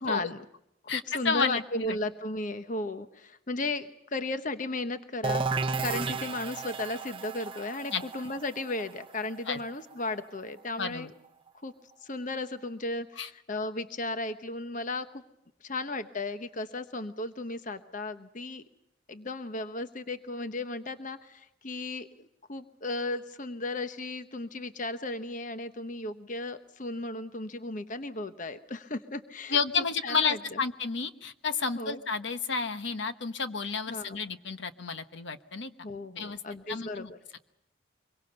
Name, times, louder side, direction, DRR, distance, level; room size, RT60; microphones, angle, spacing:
voice 1, 0.0-0.4 0.9-11.1 11.6-11.7 12.0-15.2 15.6-18.6 19.1-29.6 30.0-30.6 31.7-32.0 33.9-34.2 35.8-37.4, left 2 dB, 40° left, 10 dB, 1.0 m, -35 dB
voice 2, 0.9-2.0 7.9-8.0 9.5-9.6 10.8-11.1 13.2-13.3 29.5-35.7 36.2-36.4 36.7-37.4, left 5 dB, 60° left, 10 dB, 1.2 m, -31 dB
sound 1, 5.2-10.8, right 4 dB, 25° right, 0.8 m, -34 dB
24.5 x 23.0 x 6.8 m, 0.83 s
head